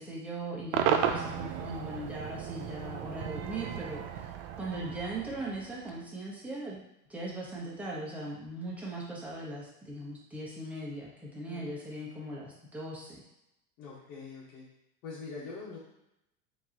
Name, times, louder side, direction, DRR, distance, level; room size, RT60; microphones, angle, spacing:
voice 1, 0.0-4.0 4.6-6.8 7.1-13.2, right 1 dB, 5° right, -5 dB, 1.0 m, -39 dB
Cheering / Crowd / Fireworks, 0.7-6.0, right 8 dB, 50° right, 0.5 m, -34 dB
voice 2, 4.7-5.0 11.4-11.7 13.8-14.7 15.0-15.8, left 4 dB, 65° left, -9 dB, 1.5 m, -44 dB
4.5 x 3.1 x 2.9 m, 0.85 s
supercardioid pair, 120°, 48 cm